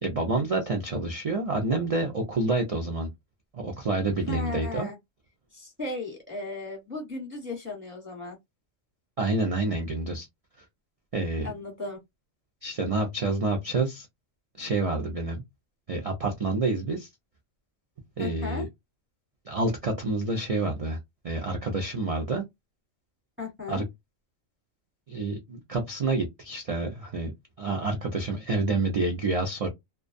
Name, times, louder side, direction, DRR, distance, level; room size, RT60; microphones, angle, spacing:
voice 1, 0.0-3.1 3.5-4.9 9.2-10.3 11.1-11.5 12.6-14.1 14.6-15.4 15.9-17.1 18.2-18.7 19.5-21.0 21.2-22.4 23.7-23.8 25.1-27.3 27.6-29.7, right 3 dB, 65° right, 0.3 m, -28 dB
voice 2, 4.3-5.0 5.5-8.4 11.4-12.0 18.2-18.7 23.4-23.8, left 3 dB, 10° right, 0.8 m, -36 dB
2.3 x 2.2 x 2.5 m
omnidirectional pair, 1.3 m